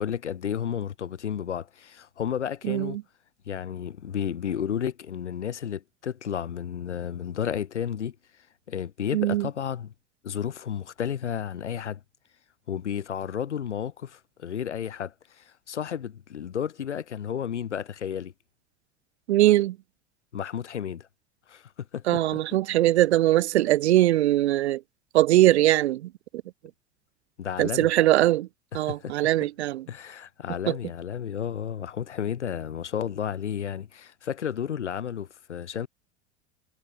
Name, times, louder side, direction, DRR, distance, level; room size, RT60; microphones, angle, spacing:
voice 1, 0.0-3.0 3.5-8.2 8.7-9.9 10.2-12.0 12.7-18.3 20.3-21.1 21.5-22.2 27.4-27.9 28.7-29.3 29.9-35.9, left 8 dB, 80° left, 2.4 m, -32 dB
voice 2, 2.6-3.0 9.1-9.5 19.3-19.8 22.1-24.8 25.1-26.1 27.6-28.5 28.7-29.8 30.7-30.8, right 15 dB, 70° right, 1.2 m, -21 dB
figure-of-eight pair, 75°, 34 cm